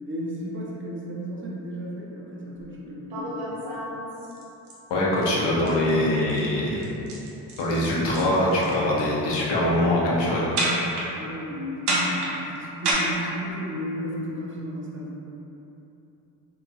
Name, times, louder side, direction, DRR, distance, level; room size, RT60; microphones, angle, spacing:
voice 1, 0.1-3.7 11.1-15.2, equal, 30° right, -4 dB, 0.6 m, -34 dB
sound 1, 2.6-2.7 3.1-4.7 5.2-5.4 5.7-5.9 6.2-6.5 6.8-8.7 9.0-9.4 10.6-11.1 11.9-12.9, right 2 dB, 70° right, 0.7 m, -28 dB
voice 2, 4.9-6.9 7.6-10.4, left 1 dB, 80° left, -5 dB, 0.7 m, -23 dB
2.9 x 2.5 x 2.4 m, 3.0 s
supercardioid pair, 50°, 42 cm